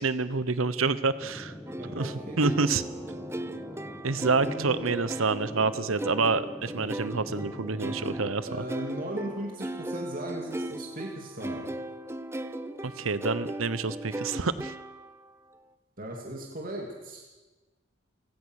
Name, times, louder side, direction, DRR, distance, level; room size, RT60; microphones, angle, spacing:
voice 1, 0.0-1.5 1.9-2.8 4.0-8.5 12.8-14.7, right 4 dB, 85° right, 15 dB, 1.0 m, -28 dB
sound 1, 1.2-8.3, equal, 10° left, 1.6 m, -42 dB
sound 2, 1.7-15.3, right 1 dB, 15° right, 0.7 m, -37 dB
voice 2, 1.7-2.5 4.4-4.9 8.4-11.7 16.0-17.2, right 1 dB, 45° right, 0 dB, 2.7 m, -37 dB
29.5 x 17.0 x 6.5 m, 1.2 s
head